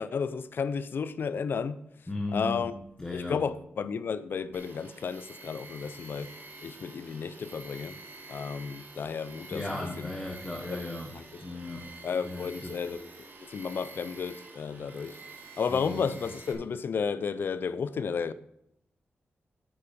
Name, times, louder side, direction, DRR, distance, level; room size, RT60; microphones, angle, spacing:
voice 1, 0.0-1.8 2.3-2.8 3.1-6.3 6.6-8.0 8.3-10.1 10.7-10.8 11.1-11.4 12.0-13.1 13.5-15.2 15.6-18.3, left 6 dB, 60° left, 0.6 m, -32 dB
voice 2, 2.1-2.7 3.0-3.5 9.5-11.1 11.4-11.9 12.2-12.8 15.7-16.2, left 2 dB, 15° left, 1.3 m, -36 dB
Tools, 4.5-16.5, right 3 dB, 50° right, 2.6 m, -48 dB
9.0 x 8.6 x 5.4 m
wide cardioid pair, 175°, 4 cm